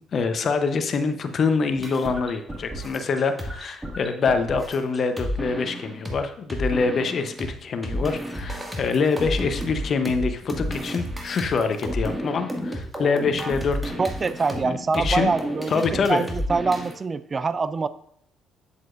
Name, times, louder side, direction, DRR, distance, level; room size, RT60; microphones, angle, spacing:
voice 1, 0.0-14.3 14.6-15.3 15.7-16.2, left 5 dB, 50° left, 8 dB, 0.8 m, -25 dB
sound 1, 1.8-6.2 6.5-7.5 7.8-17.0, equal, 10° right, 1.9 m, -31 dB
voice 2, 14.0-17.9, right 4 dB, 35° right, 15 dB, 0.4 m, -25 dB
8.1 x 7.5 x 2.5 m, 0.67 s
hypercardioid pair, 55°, 0 cm